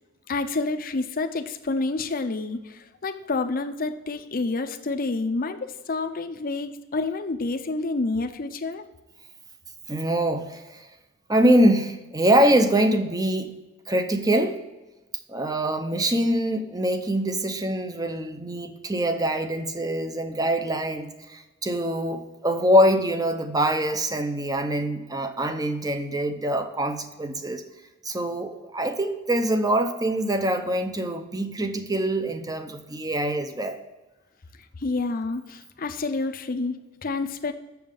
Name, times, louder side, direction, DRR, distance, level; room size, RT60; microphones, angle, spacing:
voice 1, 0.3-8.8 34.8-37.5, left 3 dB, 45° left, 7 dB, 0.6 m, -28 dB
voice 2, 9.9-10.9 11.3-13.5 13.9-14.6 15.3-27.6 28.0-33.8, right 1 dB, 20° right, 7 dB, 0.7 m, -24 dB
7.1 x 6.5 x 5.2 m, 1.1 s
head